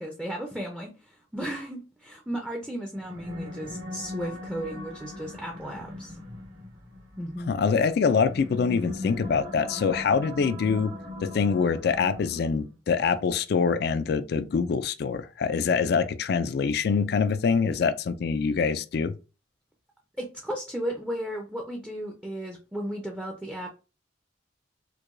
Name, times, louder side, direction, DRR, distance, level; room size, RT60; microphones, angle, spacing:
voice 1, 0.0-6.2 7.2-7.5 20.2-23.7, equal, 5° right, 0.5 m, -35 dB
sound 1, 2.9-12.7, left 1 dB, 75° right, 1.4 m, -40 dB
voice 2, 7.5-10.9 11.2-19.1, left 5 dB, 55° left, 0.3 m, -25 dB
4.6 x 2.2 x 2.5 m
head